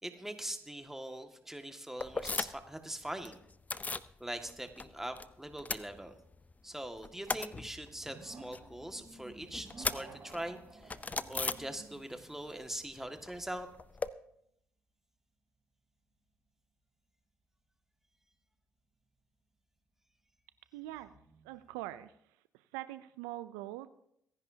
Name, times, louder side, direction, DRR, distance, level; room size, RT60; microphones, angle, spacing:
voice 1, 0.0-3.4 4.2-6.1 6.6-11.0 11.3-13.7, right 1 dB, 5° right, 6 dB, 1.8 m, -42 dB
sound 1, 2.0-2.8 3.0-4.1 4.5-5.3 5.5-6.5 6.8-12.2 12.5-14.1, left 4 dB, 30° left, 0.6 m, -39 dB
sound 2, 3.0-3.7 4.0-4.1 7.8-14.3 19.1-19.2 20.8-22.1, right 3 dB, 45° right, 4.7 m, -56 dB
voice 2, 20.7-21.1 21.4-22.2 22.5-23.9, right 16 dB, 90° right, 14 dB, 0.4 m, -43 dB
24.0 x 10.5 x 2.8 m, 0.74 s
supercardioid pair, 55°, 6 cm